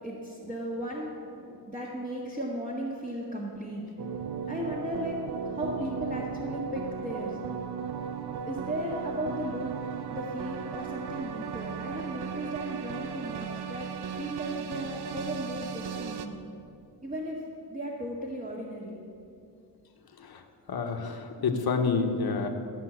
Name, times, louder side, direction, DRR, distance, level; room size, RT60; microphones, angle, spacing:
voice 1, 0.0-1.2 1.5-3.8 4.5-5.2 5.4-7.4 8.4-9.7 10.1-13.9 14.2-16.4 17.0-17.4 17.7-19.0, equal, 20° right, -5 dB, 1.7 m, -36 dB
sound 1, 4.0-16.3, right 7 dB, 60° right, 0.8 m, -36 dB
voice 2, 20.7-22.5, left 4 dB, 55° left, 4 dB, 1.3 m, -28 dB
14.0 x 5.6 x 7.9 m, 2.6 s
cardioid pair, 105°, 44 cm